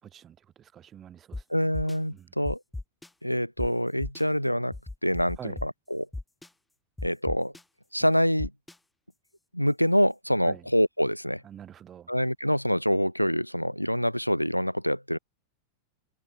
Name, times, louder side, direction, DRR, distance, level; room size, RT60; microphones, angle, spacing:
voice 1, 0.0-1.4 2.1-2.3 5.4-5.6 10.4-10.7 11.4-12.1, right 9 dB, 25° right, 4.7 m, -46 dB
sound 1, 1.3-1.4 1.7-2.0 2.5-3.1 3.6-3.7 4.0-4.2 4.7-5.7 6.1-6.5 7.0-7.6 8.4-8.7, left 2 dB, 5° left, 0.9 m, -36 dB
voice 2, 1.5-2.6 3.2-4.7 5.0-6.1 7.0-7.5 7.9-8.5 9.5-11.4 12.1-15.2, equal, 90° left, 0.7 m, -26 dB
figure-of-eight pair, 90°, 0 cm